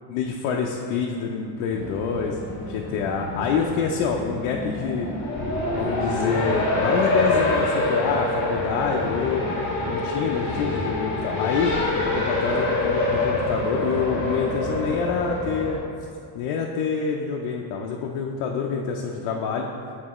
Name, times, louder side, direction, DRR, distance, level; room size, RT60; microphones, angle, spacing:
voice 1, 0.1-2.4 2.7-5.1 5.8-9.4 9.9-11.7 12.1-15.8 16.3-19.7, left 6 dB, 80° left, 0 dB, 0.6 m, -26 dB
Race car auto racing, 1.7-15.8, left 2 dB, 25° left, 1.2 m, -26 dB
8.5 x 3.9 x 3.0 m, 2.4 s
cardioid pair, 150°, 49 cm